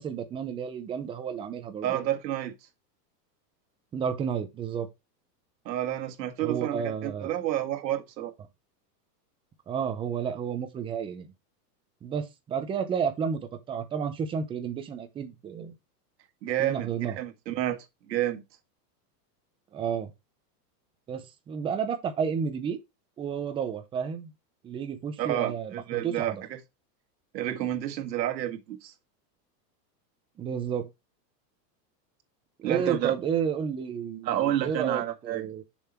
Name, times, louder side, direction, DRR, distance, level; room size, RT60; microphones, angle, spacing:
voice 1, 0.0-2.0 3.9-4.9 6.4-7.4 9.7-11.3 12.0-15.7 16.6-17.2 19.7-20.1 21.1-22.8 23.2-24.3 24.6-26.4 30.4-30.9 32.6-35.6, right 7 dB, 10° right, 0.6 m, -31 dB
voice 2, 1.8-2.5 5.7-8.3 16.4-18.4 25.2-26.6 27.3-28.9 32.6-33.1 34.2-35.5, right 12 dB, 85° right, 1.8 m, -30 dB
7.1 x 5.5 x 4.4 m
supercardioid pair, 160°, 50 cm